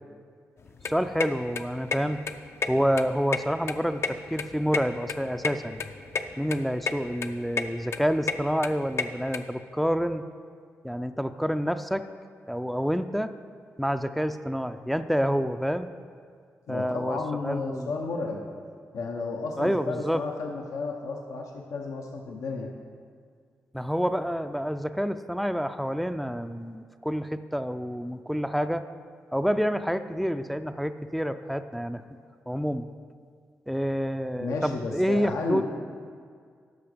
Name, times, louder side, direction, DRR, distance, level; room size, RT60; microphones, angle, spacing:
sound 1, 0.6-9.4, left 5 dB, 55° left, 0.5 m, -32 dB
voice 1, 0.9-2.2 2.7-5.9 6.4-10.3 10.8-12.0 12.5-13.3 13.8-15.9 16.7-17.2 17.4-17.9 19.6-20.2 23.7-28.8 29.3-32.0 32.5-32.9 33.7-35.6, equal, ahead, 9 dB, 0.4 m, -28 dB
voice 2, 16.7-18.4 18.9-22.7 34.4-35.6, left 4 dB, 90° left, 1 dB, 0.8 m, -32 dB
12.5 x 5.1 x 5.1 m, 2.1 s
cardioid pair, 80°, 5 cm